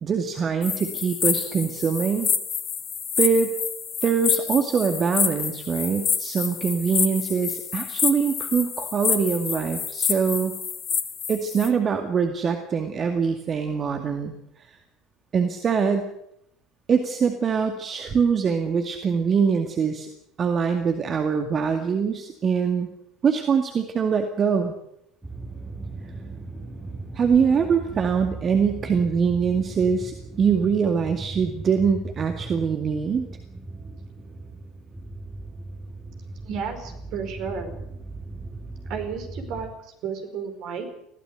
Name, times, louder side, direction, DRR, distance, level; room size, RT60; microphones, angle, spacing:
voice 1, 0.0-2.3 3.2-3.5 4.0-10.5 11.3-14.3 14.7-14.8 15.3-16.1 16.9-20.1 20.4-22.9 23.2-24.7 27.1-33.3, right 6 dB, 35° right, 5 dB, 2.1 m, -23 dB
sound 1, 0.6-11.7, left 7 dB, 40° left, 2.2 m, -28 dB
sound 2, 25.2-39.7, right 2 dB, 10° right, 6.9 m, -38 dB
voice 2, 36.4-37.7 38.9-40.9, right 6 dB, 55° right, 6 dB, 4.8 m, -32 dB
21.0 x 16.5 x 8.0 m, 0.79 s
figure-of-eight pair, 65°, 0 cm